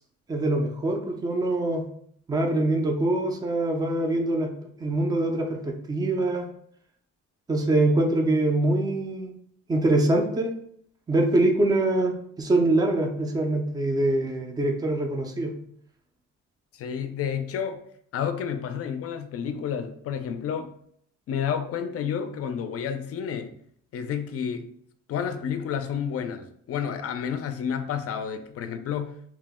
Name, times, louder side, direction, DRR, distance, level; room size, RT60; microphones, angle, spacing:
voice 1, 0.3-1.9 2.3-4.5 4.8-6.5 7.5-9.3 9.7-10.5 11.1-15.5, right 2 dB, 15° right, 3 dB, 0.4 m, -24 dB
voice 2, 16.7-17.8 18.1-20.7 21.3-23.5 23.9-24.7 25.1-29.2, left 8 dB, 50° left, 9 dB, 0.4 m, -30 dB
2.8 x 2.0 x 3.5 m, 0.64 s
cardioid pair, 115°, 30 cm